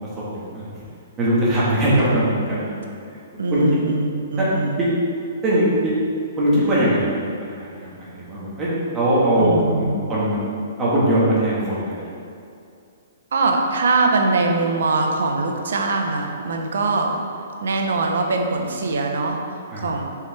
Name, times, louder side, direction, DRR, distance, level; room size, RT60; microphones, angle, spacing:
voice 1, 0.3-0.7 1.2-2.8 3.5-3.6 4.4-4.5 4.8-4.9 5.4-5.9 6.4-7.2 7.6-8.7 8.9-10.4 10.8-12.1 19.7-19.9, right 1 dB, 15° right, -8 dB, 1.5 m, -20 dB
voice 2, 2.1-2.5 3.3-4.8 9.4-9.9 13.3-17.2 17.6-20.0, right 3 dB, 75° right, 3 dB, 0.9 m, -22 dB
6.7 x 4.9 x 3.4 m, 2.5 s
hypercardioid pair, 170°, 0 cm